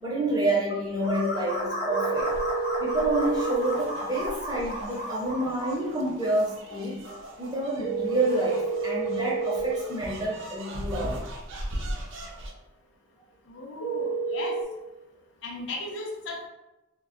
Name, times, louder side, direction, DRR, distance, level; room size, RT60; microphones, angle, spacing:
voice 1, 0.0-2.4 2.8-11.2, right 1 dB, 20° right, -5 dB, 0.6 m, -29 dB
sound 1, 1.0-5.7, equal, 50° left, 1.0 m, -33 dB
sound 2, 1.9-3.8 7.8-9.8 13.8-14.6, right 5 dB, 90° left, 0.9 m, -29 dB
sound 3, 2.2-12.5, right 1 dB, 75° right, 0.5 m, -40 dB
voice 2, 13.5-14.6 15.4-16.5, left 2 dB, 65° left, 0 dB, 0.5 m, -36 dB
2.1 x 2.0 x 3.6 m, 1.0 s
head